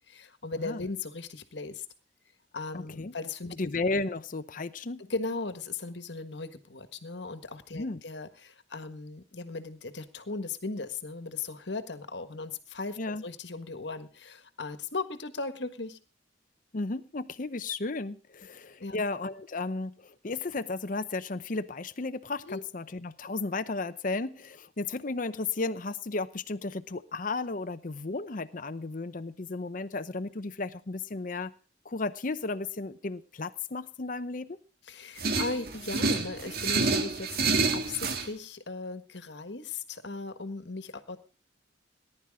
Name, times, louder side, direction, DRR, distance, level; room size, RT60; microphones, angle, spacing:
voice 1, 0.1-1.8 2.5-3.5 5.0-16.0 18.8-19.0 22.4-22.6 34.9-41.2, left 3 dB, 70° left, 10 dB, 1.6 m, -37 dB
voice 2, 2.7-3.1 3.6-5.0 7.7-8.0 13.0-13.2 16.7-31.5 31.8-34.6, left 3 dB, 45° left, 10 dB, 0.7 m, -34 dB
sound 1, 35.2-38.3, right 3 dB, 55° right, 1.6 m, -28 dB
19.0 x 11.0 x 3.6 m, 0.36 s
head